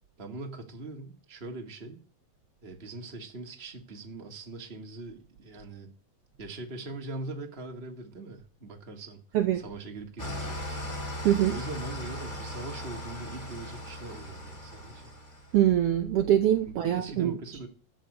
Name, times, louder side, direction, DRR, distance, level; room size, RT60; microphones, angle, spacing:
voice 1, 0.2-2.0 2.6-5.9 6.4-9.2 9.5-10.9 11.5-15.1 16.7-17.7, right 2 dB, 25° right, 1.7 m, -41 dB
Engine starting / Idling, 10.2-15.6, left 1 dB, 15° left, 2.9 m, -38 dB
voice 2, 11.2-11.6 15.5-17.4, right 11 dB, 65° right, 1.7 m, -24 dB
12.5 x 6.5 x 8.2 m
omnidirectional pair, 3.3 m